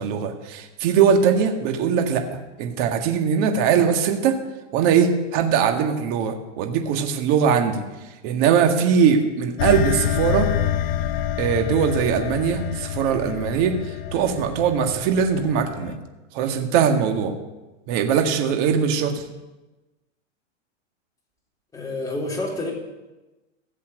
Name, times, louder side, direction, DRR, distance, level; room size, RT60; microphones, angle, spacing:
voice 1, 0.0-2.2 2.6-4.4 4.7-7.8 8.2-10.5 11.4-16.0 16.3-17.3 17.9-19.2, right 7 dB, 40° right, 4 dB, 1.8 m, -21 dB
sound 1, 9.6-16.0, left 10 dB, 50° left, 0.8 m, -27 dB
voice 2, 21.7-22.7, left 2 dB, 10° left, -3 dB, 3.7 m, -28 dB
15.0 x 7.5 x 7.9 m, 1.1 s
hypercardioid pair, 140°, 37 cm